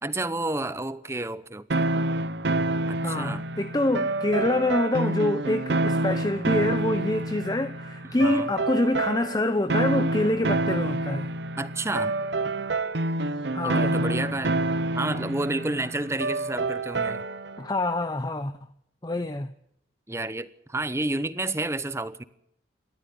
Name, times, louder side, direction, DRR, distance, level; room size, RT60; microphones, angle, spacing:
voice 1, 0.0-1.9 2.9-3.4 8.2-8.5 11.6-12.1 13.6-14.6 14.9-17.3 20.1-22.2, right 2 dB, 15° right, 0.9 m, -30 dB
sound 1, 1.7-17.6, right 2 dB, 65° right, 0.9 m, -28 dB
voice 2, 3.0-11.3 13.5-14.1 17.6-18.5 19.0-19.5, left 2 dB, 20° left, 0.7 m, -26 dB
28.0 x 14.0 x 7.0 m
head